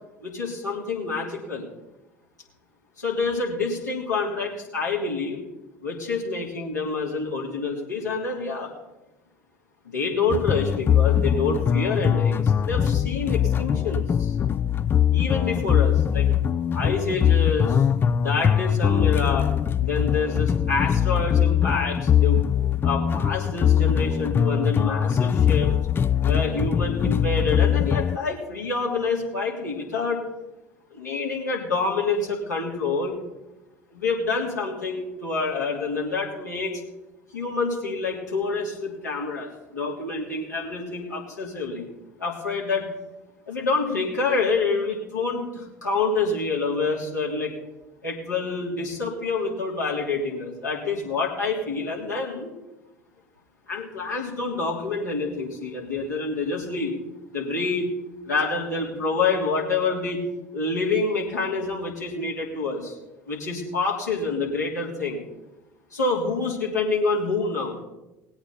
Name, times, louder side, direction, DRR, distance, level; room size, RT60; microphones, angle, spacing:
voice 1, 0.2-1.6 3.0-5.4 5.8-8.7 9.8-14.3 15.1-16.3 16.7-17.8 18.2-19.5 19.8-22.4 22.8-25.7 26.2-30.2 30.9-33.1 33.9-36.8 37.3-41.9 42.2-42.9 43.5-47.5 48.0-52.5 53.7-56.9 57.3-57.9 58.2-60.2 60.5-63.0 63.3-65.2 65.9-67.7, left 4 dB, 85° left, -4 dB, 3.2 m, -27 dB
sound 1, 10.3-28.2, left 9 dB, 25° left, 0.4 m, -22 dB
20.0 x 8.7 x 4.2 m, 0.98 s
figure-of-eight pair, 65°, 9 cm